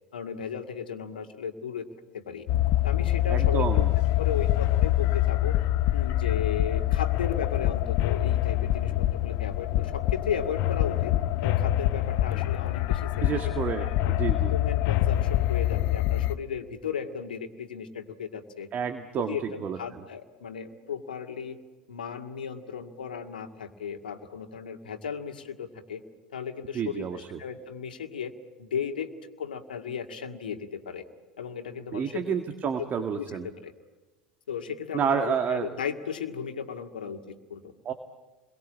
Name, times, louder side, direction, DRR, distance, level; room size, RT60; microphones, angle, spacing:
voice 1, 0.1-1.9 2.1-2.5 2.8-3.9 4.2-5.6 5.9-11.1 11.4-14.1 14.5-18.7 19.2-21.6 21.9-26.0 26.3-28.3 28.6-31.0 31.4-32.3 32.6-32.9 33.2-33.7 34.5-37.7, left 7 dB, 80° left, 6 dB, 2.0 m, -35 dB
sound 1, 2.5-16.4, left 14 dB, 55° left, 0.9 m, -25 dB
voice 2, 3.3-3.9 13.2-14.5 18.7-19.8 26.7-27.4 31.9-33.5 34.9-35.7 37.9-38.0, right 7 dB, 35° right, 7 dB, 1.8 m, -30 dB
30.0 x 22.5 x 8.7 m, 1.2 s
figure-of-eight pair, 75°, 5 cm